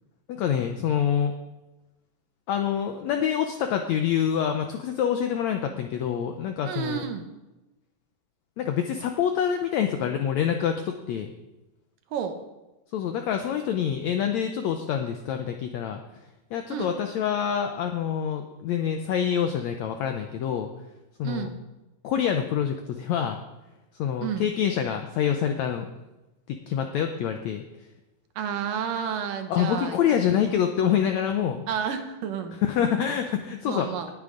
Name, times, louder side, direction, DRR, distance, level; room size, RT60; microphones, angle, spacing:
voice 1, 0.3-1.3 2.5-7.0 8.6-11.3 12.9-16.0 16.5-20.7 21.2-21.5 22.0-23.4 24.0-25.9 26.5-27.6 29.5-31.6 32.6-33.9, left 8 dB, 85° left, 5 dB, 1.6 m, -26 dB
voice 2, 6.6-7.2 12.1-12.4 16.7-16.9 21.2-21.6 24.2-24.5 28.4-30.0 31.7-32.6 33.7-34.1, right 8 dB, 75° right, 7 dB, 2.5 m, -30 dB
19.0 x 9.4 x 3.9 m, 1.0 s
omnidirectional pair, 4.1 m